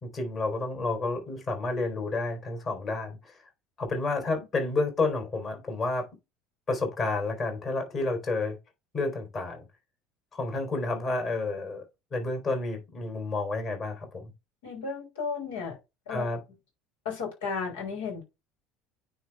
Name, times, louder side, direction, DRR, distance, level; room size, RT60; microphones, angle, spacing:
voice 1, 0.0-3.3 3.8-6.1 6.7-8.6 8.9-9.6 10.3-11.8 12.1-14.3 16.1-16.4, left 3 dB, 35° left, 3.4 m, -30 dB
voice 2, 14.6-15.8 16.1-16.2 17.0-18.2, left 5 dB, 70° left, 3.1 m, -33 dB
9.5 x 3.2 x 3.4 m
figure-of-eight pair, 65°, 0 cm